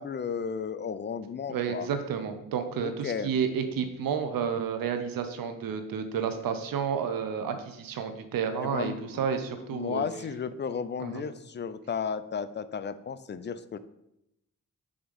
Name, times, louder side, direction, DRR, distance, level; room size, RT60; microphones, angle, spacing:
voice 1, 0.0-1.9 2.8-3.3 8.6-9.2 9.7-13.8, left 6 dB, 35° left, 13 dB, 0.4 m, -34 dB
voice 2, 1.5-10.0 11.0-11.2, right 7 dB, 85° right, 8 dB, 0.7 m, -31 dB
5.0 x 3.6 x 5.2 m, 0.84 s
cardioid pair, 70°, 33 cm